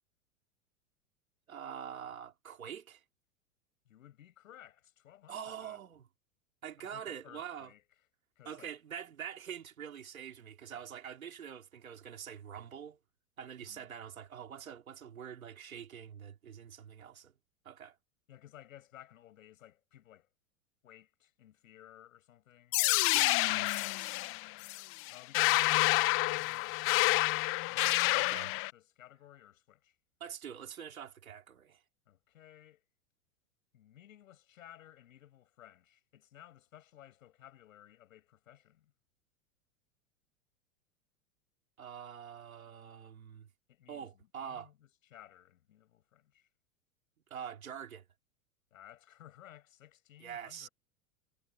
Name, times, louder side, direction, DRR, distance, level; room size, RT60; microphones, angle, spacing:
voice 1, 1.5-3.0 5.3-6.1 6.6-7.7 8.5-13.0 13.4-17.3 17.7-18.0 23.1-24.1 28.1-28.5 30.2-31.8 41.8-43.5 43.9-44.7 47.3-48.0 50.2-50.7, right 8 dB, 85° right, 3.7 m, -45 dB
voice 2, 3.8-5.8 6.8-7.8 8.4-8.7 10.7-10.8 13.6-13.9 18.3-20.3 20.8-23.8 24.3-24.7 25.1-30.0 32.1-32.8 33.7-38.9 43.7-46.5 48.7-50.7, left 12 dB, 75° left, 7.8 m, -57 dB
sound 1, 22.7-28.7, left 23 dB, 35° left, 0.5 m, -28 dB
hypercardioid pair, 95°, 41 cm